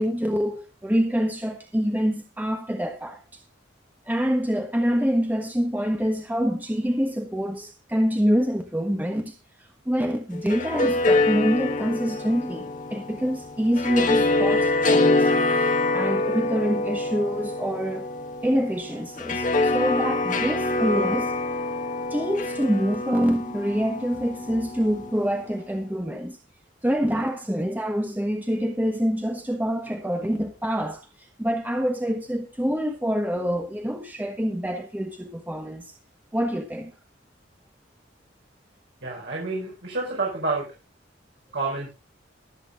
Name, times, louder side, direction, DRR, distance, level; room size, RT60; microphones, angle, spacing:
voice 1, 0.0-3.4 4.1-9.3 9.6-18.1 18.4-21.3 22.1-26.4 26.8-35.9 36.3-36.9, equal, 10° right, 1.3 m, -26 dB
sound 1, 10.3-25.5, left 2 dB, 40° left, 1.6 m, -25 dB
voice 2, 39.0-40.7 41.5-41.9, right 3 dB, 65° right, 5.0 m, -28 dB
22.5 x 8.4 x 2.5 m
head